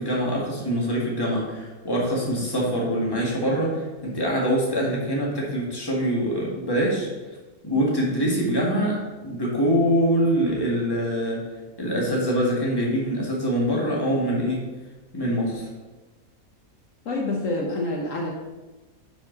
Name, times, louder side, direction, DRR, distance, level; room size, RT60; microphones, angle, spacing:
voice 1, 0.0-7.1 7.6-9.0 9.2-11.4 11.8-14.6 15.1-15.7, equal, 15° left, -3 dB, 1.8 m, -24 dB
voice 2, 17.0-18.3, left 2 dB, 60° left, -1 dB, 1.4 m, -27 dB
10.5 x 4.7 x 4.0 m, 1.2 s
omnidirectional pair, 1.5 m